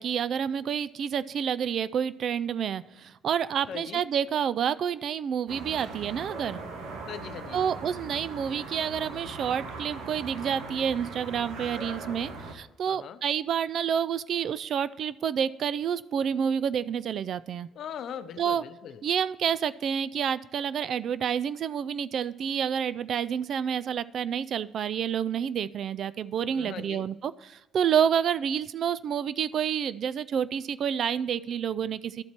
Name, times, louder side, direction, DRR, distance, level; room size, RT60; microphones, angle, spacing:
voice 1, 0.0-6.6 7.5-17.7 18.4-18.6 19.0-32.2, right 8 dB, 60° right, 16 dB, 0.4 m, -29 dB
voice 2, 3.7-4.0 7.1-7.6 12.9-13.2 17.7-19.0 26.5-27.1, left 8 dB, 65° left, 12 dB, 0.6 m, -40 dB
sound 1, 5.5-12.5, right 3 dB, 80° right, 1.3 m, -40 dB
12.0 x 4.3 x 4.3 m, 1.0 s
supercardioid pair, 70°, 0 cm